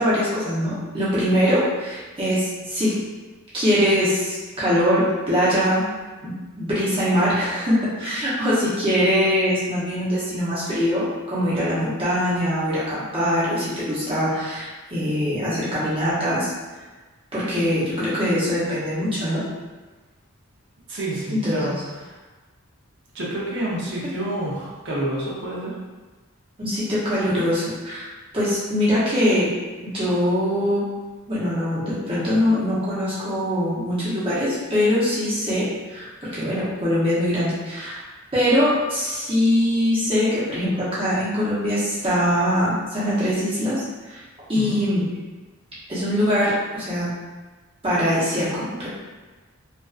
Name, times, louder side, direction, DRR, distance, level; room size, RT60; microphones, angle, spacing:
voice 1, 0.0-2.9 3.5-5.9 6.2-16.5 17.3-19.4 21.3-21.7 26.6-28.1 28.3-29.5 29.8-30.8 31.3-38.0 38.3-44.2 44.5-45.1 45.9-47.1 47.8-48.9, equal, 25° right, -10 dB, 0.9 m, -22 dB
voice 2, 20.9-22.2 23.1-25.8 44.5-44.8, right 1 dB, 55° right, -5 dB, 0.7 m, -28 dB
2.4 x 2.3 x 2.4 m, 1.3 s
head